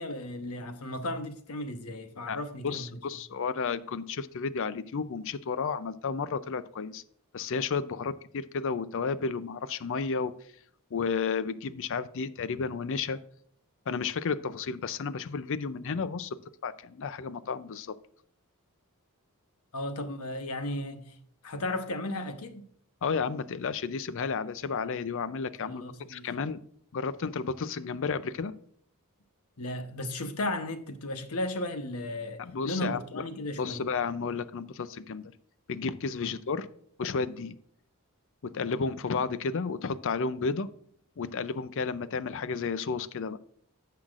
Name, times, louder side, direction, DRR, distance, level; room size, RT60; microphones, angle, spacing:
voice 1, 0.0-3.0 19.7-21.1 21.4-22.6 25.7-26.3 29.6-33.9 36.2-36.3, left 1 dB, 80° left, 1.0 m, -35 dB
voice 2, 2.6-7.0 7.3-10.3 10.9-13.2 13.9-16.4 16.6-17.9 23.0-25.8 26.1-26.6 26.9-28.5 32.4-33.0 33.6-35.3 35.7-36.7 37.0-37.6 38.4-40.7 41.2-43.4, left 5 dB, 60° left, 0.5 m, -32 dB
15.0 x 5.7 x 2.5 m
head